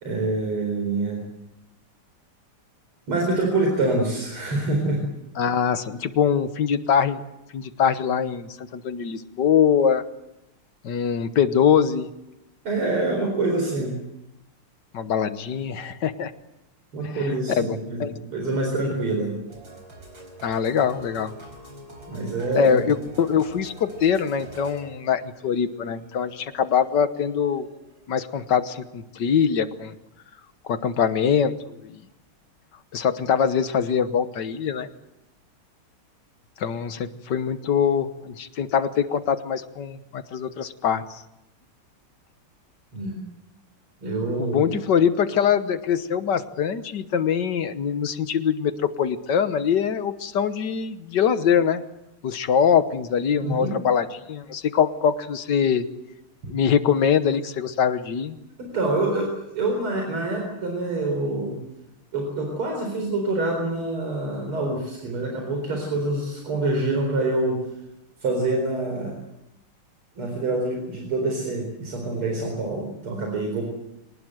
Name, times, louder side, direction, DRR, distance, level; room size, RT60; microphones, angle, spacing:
voice 1, 0.0-1.2 3.1-5.0 12.6-14.0 16.9-19.3 22.1-22.9 42.9-43.2 44.0-44.8 53.4-53.7 58.6-61.5 62.1-67.6 68.2-69.2 70.2-73.6, right 2 dB, 85° right, 2 dB, 5.2 m, -26 dB
voice 2, 5.4-7.2 7.5-10.1 10.8-12.1 14.9-16.3 17.0-17.3 17.6-18.1 20.4-21.3 22.5-27.7 28.1-29.9 30.6-32.0 32.9-34.9 36.6-41.2 44.4-51.8 52.2-55.8 56.5-58.4, left 7 dB, 60° left, 11 dB, 1.6 m, -23 dB
sound 1, 19.5-28.0, right 1 dB, 65° right, 5.3 m, -46 dB
24.5 x 19.0 x 7.8 m, 0.88 s
omnidirectional pair, 2.3 m